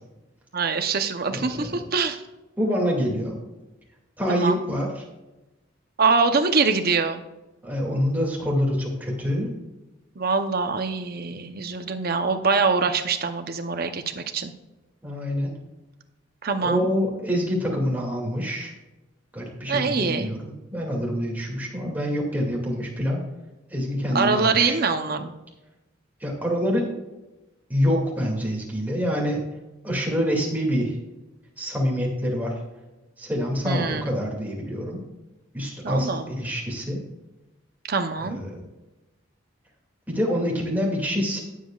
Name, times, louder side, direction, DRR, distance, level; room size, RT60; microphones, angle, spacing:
voice 1, 0.5-2.2 4.3-4.6 6.0-7.2 10.2-14.5 16.4-16.9 19.7-20.3 24.1-25.3 33.6-34.1 35.8-36.3 37.9-38.4, right 4 dB, 50° right, 7 dB, 0.8 m, -24 dB
voice 2, 1.3-1.8 2.6-3.4 4.2-5.0 7.6-9.5 15.0-15.5 16.6-18.7 19.3-23.2 23.7-24.8 26.2-26.9 27.7-29.5 29.8-31.0 31.6-32.5 33.2-35.0 35.5-37.0 38.2-38.6 40.1-41.4, equal, 10° right, -2 dB, 2.3 m, -26 dB
17.5 x 7.5 x 2.4 m, 1.1 s
head